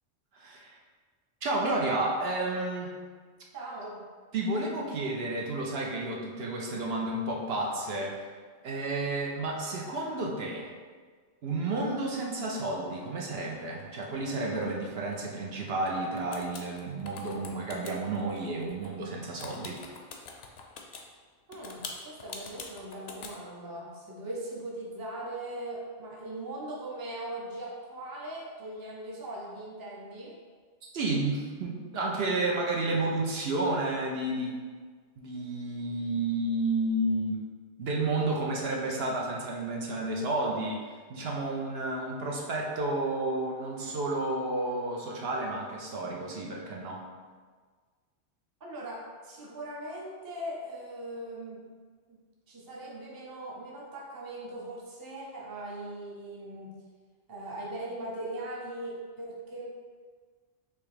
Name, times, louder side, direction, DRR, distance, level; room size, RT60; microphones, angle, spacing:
voice 1, 0.3-0.8 1.4-2.9 4.3-8.2 8.6-10.7 11.4-19.8 30.9-34.6 35.2-37.4 37.8-47.0, right 2 dB, 65° right, -2 dB, 0.9 m, -31 dB
voice 2, 3.5-4.0 21.5-30.4 48.6-51.7 52.1-52.2 52.5-56.7 57.3-59.9, right 1 dB, 25° right, -3 dB, 0.5 m, -40 dB
sound 1, 13.4-21.0 21.5-23.4, left 5 dB, 65° left, 0.8 m, -45 dB
3.5 x 2.9 x 4.7 m, 1.5 s
omnidirectional pair, 1.2 m